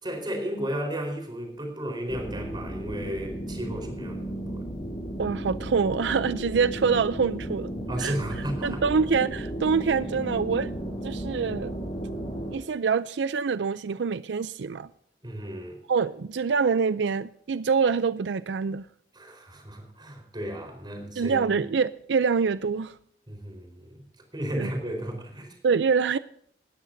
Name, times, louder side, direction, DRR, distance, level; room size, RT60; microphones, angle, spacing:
voice 1, 0.0-4.7 7.9-8.8 15.2-15.8 19.1-21.6 23.3-24.0 24.3-25.6, equal, 25° right, 4.3 m, -34 dB
sound 1, 2.1-12.6, right 1 dB, 25° left, 5.0 m, -34 dB
voice 2, 5.2-7.7 8.0-8.1 8.6-10.7 11.0-11.7 12.5-14.9 15.9-18.9 21.2-23.0 24.6-24.7 25.6-26.2, right 5 dB, 85° right, 0.5 m, -25 dB
19.0 x 13.5 x 2.7 m
head